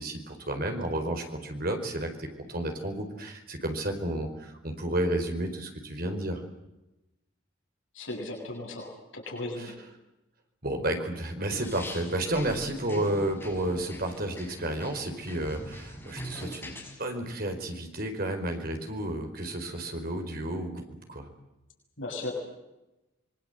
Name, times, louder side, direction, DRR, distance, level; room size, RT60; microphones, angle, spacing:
voice 1, 0.0-6.4 9.5-9.9 10.6-21.3, right 1 dB, 45° right, 4 dB, 4.5 m, -32 dB
voice 2, 7.9-9.7 22.0-22.3, left 2 dB, 70° left, 0 dB, 7.1 m, -36 dB
sound 1, 11.5-17.0, equal, 10° left, 6.6 m, -42 dB
25.5 x 23.0 x 8.0 m, 0.97 s
head